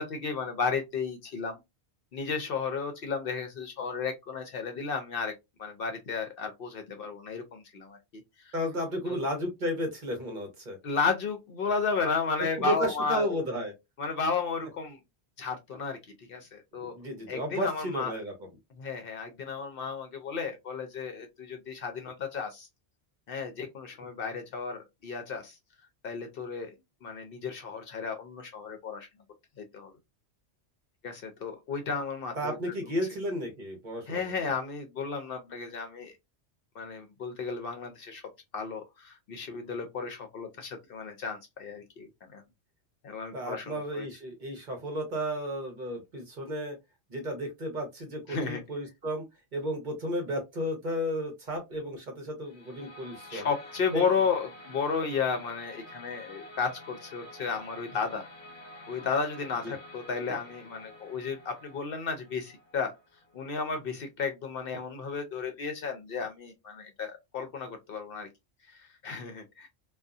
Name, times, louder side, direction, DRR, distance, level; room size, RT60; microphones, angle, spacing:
voice 1, 0.0-1.6 2.1-5.3 5.6-8.5 9.1-9.2 10.8-13.4 14.0-15.0 15.4-17.0 17.3-18.1 18.8-22.7 23.3-25.6 26.0-26.7 27.0-29.1 29.6-29.9 31.0-32.7 34.1-36.2 36.7-38.2 38.5-42.4 43.0-44.1 48.3-48.6 53.3-58.3 58.9-62.9 63.3-68.3 68.7-69.7, left 5 dB, 60° left, 0.7 m, -33 dB
voice 2, 8.5-10.8 12.6-13.7 16.8-18.3 32.4-34.2 43.3-46.8 47.1-49.2 49.5-53.5 53.9-54.0 59.6-59.7, equal, 45° right, 0.9 m, -33 dB
sound 1, 52.4-63.5, left 1 dB, 30° left, 1.2 m, -49 dB
2.6 x 2.2 x 2.3 m
omnidirectional pair, 1.2 m